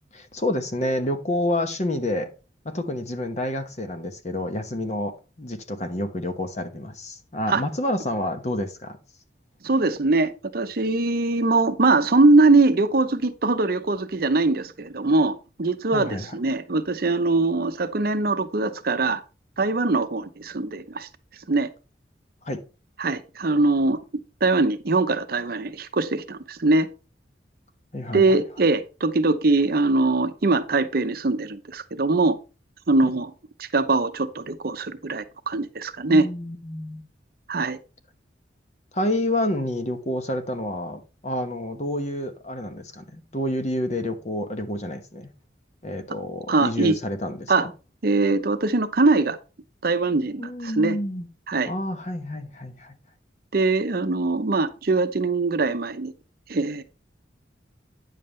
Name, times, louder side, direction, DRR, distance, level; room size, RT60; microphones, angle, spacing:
voice 1, 0.1-2.3 2.6-9.0 15.9-16.3 22.4-22.6 27.9-28.4 33.0-33.1 36.1-37.1 38.9-45.3 45.8-47.7 50.4-51.3 51.7-52.9, left 1 dB, 40° left, 1.1 m, -29 dB
voice 2, 9.6-19.2 19.6-21.1 21.5-21.7 23.0-24.0 24.4-26.9 28.1-32.4 32.9-33.3 33.6-36.3 37.5-37.8 46.5-46.9 47.5-47.7 48.0-49.4 49.8-50.9 51.5-51.7 53.5-56.1 56.5-56.8, right 3 dB, 55° right, 0.7 m, -22 dB
9.5 x 7.2 x 3.2 m
head